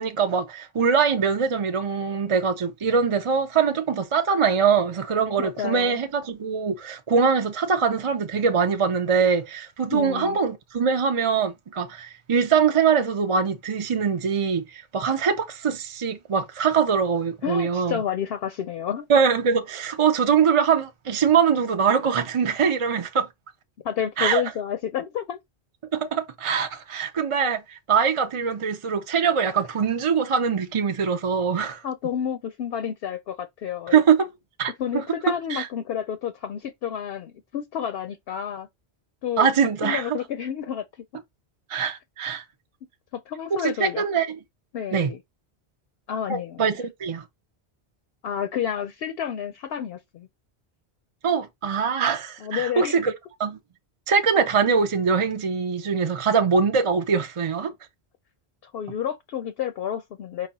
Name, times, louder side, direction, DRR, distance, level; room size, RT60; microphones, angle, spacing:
voice 1, 0.0-18.0 19.1-23.3 24.2-24.4 25.9-31.8 33.9-34.3 34.6-35.7 39.4-40.2 41.7-42.4 43.5-44.4 44.9-45.1 46.3-47.2 51.2-53.1 53.4-53.6 54.1-57.7, right 6 dB, 40° right, 0.5 m, -23 dB
voice 2, 5.4-6.0 9.9-10.4 17.4-19.1 23.8-25.4 31.8-34.0 34.7-38.7 39.2-39.5 39.8-40.8 43.1-44.0 44.7-45.2 46.1-46.6 48.2-50.3 52.4-53.0 58.7-60.5, left 9 dB, 70° left, 0.7 m, -30 dB
4.9 x 2.2 x 4.0 m
omnidirectional pair, 1.1 m